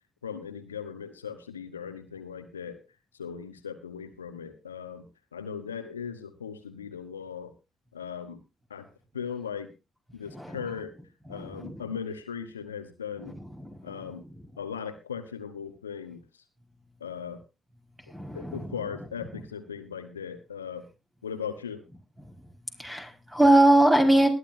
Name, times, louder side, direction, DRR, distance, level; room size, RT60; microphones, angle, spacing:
voice 1, 0.2-2.8 3.1-5.0 5.3-7.5 7.9-8.4 8.7-8.9 9.1-9.7 10.1-11.0 11.3-13.3 13.8-14.2 14.6-16.4 17.0-17.4 18.3-20.8 21.2-21.8, left 7 dB, 90° left, 8 dB, 1.1 m, -38 dB
voice 2, 10.3-10.6 11.3-11.8 13.2-14.1 18.1-18.7 22.3-22.5 22.8-24.3, right 1 dB, 10° right, 2 dB, 4.8 m, -23 dB
20.0 x 11.0 x 2.7 m, 0.28 s
figure-of-eight pair, 45°, 0 cm